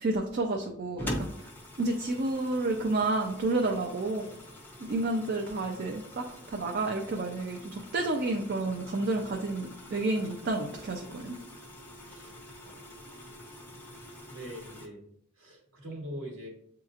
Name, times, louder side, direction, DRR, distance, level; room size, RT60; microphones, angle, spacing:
voice 1, 0.0-1.3 1.8-4.3 4.8-11.3, right 2 dB, 45° right, 2 dB, 0.4 m, -30 dB
sound 1, 1.0-14.9, left 1 dB, 10° left, 0.5 m, -44 dB
voice 2, 14.3-15.0 15.4-16.5, equal, 70° right, -2 dB, 1.1 m, -42 dB
7.7 x 2.8 x 2.4 m, 0.73 s
head